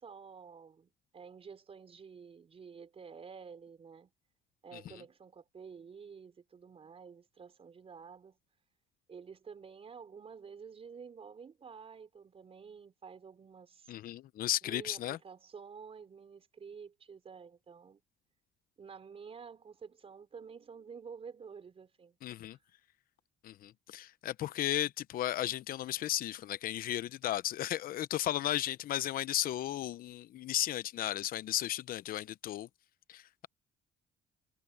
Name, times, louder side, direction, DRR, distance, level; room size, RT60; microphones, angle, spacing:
voice 1, 0.0-4.1 4.6-8.4 9.1-13.9 14.6-18.0 18.8-22.2 22.5-22.6, right 6 dB, 35° right, 4.6 m, -50 dB
voice 2, 13.9-15.2 22.2-22.6 23.4-32.7 33.1-33.5, left 13 dB, 60° left, 0.7 m, -35 dB
cardioid pair, 110°, 17 cm